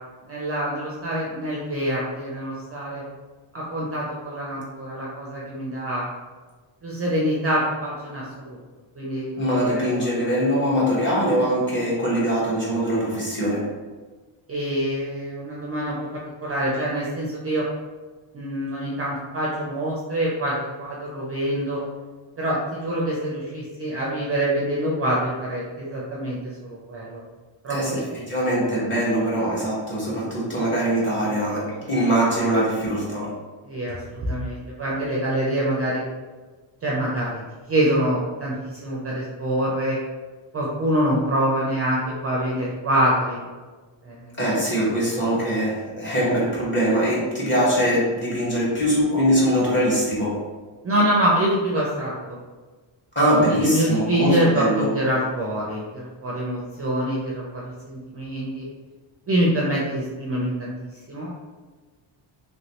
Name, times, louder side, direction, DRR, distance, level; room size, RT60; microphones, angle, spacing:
voice 1, 0.3-3.0 3.5-6.1 6.8-8.4 9.0-9.3 9.6-9.9 10.2-10.3 14.5-17.6 18.3-20.5 20.8-21.8 22.4-27.2 27.6-28.0 33.6-36.0 36.8-37.4 37.7-38.5 38.8-40.0 40.5-43.4 44.0-44.3 45.4-45.5 50.8-52.4 53.4-58.6 59.3-60.7 61.1-61.3, right 1 dB, 30° right, -5 dB, 0.4 m, -25 dB
voice 2, 9.4-13.6 27.7-33.3 44.4-50.4 53.1-54.9, equal, 25° left, -7 dB, 1.1 m, -22 dB
3.1 x 3.1 x 2.8 m, 1.3 s
wide cardioid pair, 170°, 49 cm